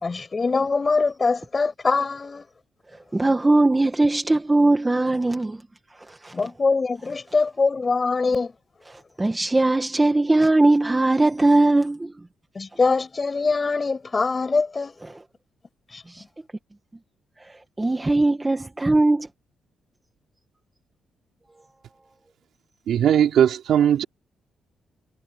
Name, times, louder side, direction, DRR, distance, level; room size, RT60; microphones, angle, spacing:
voice 1, 0.0-2.4 6.3-8.5 12.6-14.9, left 4 dB, 30° left, 6.5 m, -23 dB
voice 2, 3.1-5.6 6.1-6.5 8.9-12.1 15.0-15.2 16.1-16.2 17.4-19.3, right 2 dB, 15° right, 1.8 m, -20 dB
voice 3, 22.9-24.0, right 9 dB, 75° right, 3.3 m, -18 dB
cardioid pair, 90°, 0 cm